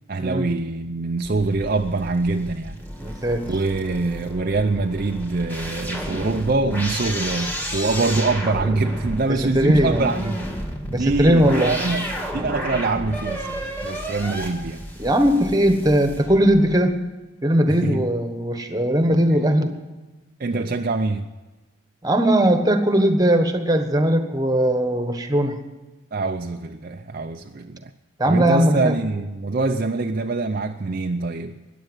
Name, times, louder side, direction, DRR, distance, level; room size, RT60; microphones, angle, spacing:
voice 1, 0.1-2.8 3.5-10.4 10.9-14.8 17.7-18.0 20.4-21.3 26.1-27.9 28.3-31.6, right 3 dB, 45° right, 0.5 m, -24 dB
sound 1, 1.2-16.8, equal, 10° left, 1.9 m, -32 dB
voice 2, 3.0-3.6 9.5-10.0 10.9-11.7 15.0-17.0 17.4-19.7 22.0-25.6 28.2-28.9, right 1 dB, 20° right, 1.2 m, -19 dB
14.5 x 10.0 x 9.0 m
head